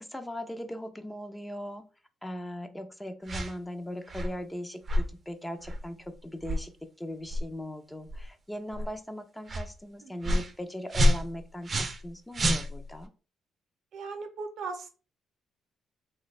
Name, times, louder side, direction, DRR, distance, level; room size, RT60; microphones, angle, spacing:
voice 1, 0.0-1.9 2.2-6.7 7.0-13.1, left 1 dB, 10° left, 0.5 m, -39 dB
sound 1, 3.3-3.5 4.1-4.4 4.9-5.1 5.6-5.8 6.4-6.6 7.3-7.4 8.1-8.3 8.7-8.9 9.5-9.7 10.2-10.5 10.9-12.1 12.3-13.0, equal, 40° right, 0.5 m, -27 dB
voice 2, 10.0-10.4 13.9-14.9, right 4 dB, 70° right, 0.7 m, -39 dB
3.0 x 2.2 x 4.0 m
cardioid pair, 90°, 0 cm